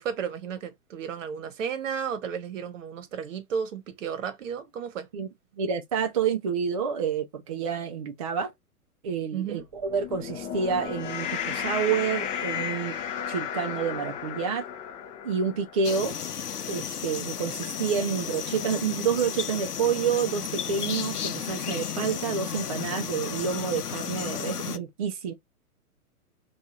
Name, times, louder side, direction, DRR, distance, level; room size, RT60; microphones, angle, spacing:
voice 1, 0.0-5.1 9.3-9.6, right 7 dB, 55° right, 1.1 m, -33 dB
voice 2, 5.6-8.5 9.0-13.0 13.3-14.6 15.2-16.2 16.7-25.3, right 6 dB, 25° right, 0.4 m, -28 dB
sound 1, 9.8-16.3, left 8 dB, 20° left, 0.5 m, -34 dB
sound 2, 15.8-24.8, left 8 dB, 85° left, 0.7 m, -33 dB
3.5 x 2.4 x 4.1 m
figure-of-eight pair, 120°, 45 cm